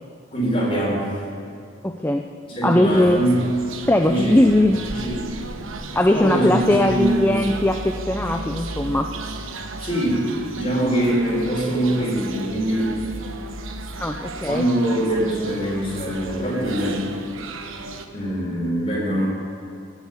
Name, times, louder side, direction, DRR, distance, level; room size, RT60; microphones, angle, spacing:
voice 1, 0.3-1.1 2.5-3.4 4.1-4.5 4.9-5.2 6.1-7.5 9.8-10.2 10.5-13.0 14.4-17.0 18.1-19.3, right 1 dB, 30° left, -4 dB, 4.7 m, -23 dB
voice 2, 1.8-2.3 2.6-3.2 3.9-4.8 5.9-9.1 14.0-14.6, left 1 dB, 10° left, 4 dB, 0.5 m, -19 dB
sound 1, 2.9-18.1, right 2 dB, 85° right, 1.1 m, -34 dB
17.5 x 8.3 x 9.6 m, 2.3 s
head